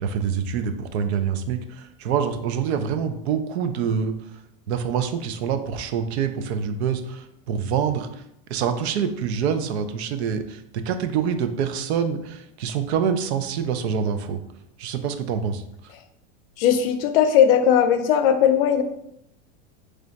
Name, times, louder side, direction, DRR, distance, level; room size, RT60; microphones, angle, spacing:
voice 1, 0.0-1.6 2.0-4.1 4.7-7.0 7.5-8.1 8.5-10.4 10.7-12.2 12.6-14.4 14.8-15.6, right 7 dB, 80° right, 9 dB, 0.6 m, -25 dB
voice 2, 16.6-18.8, left 8 dB, 60° left, 8 dB, 0.5 m, -18 dB
3.3 x 2.4 x 3.9 m, 0.78 s
supercardioid pair, 160°, 32 cm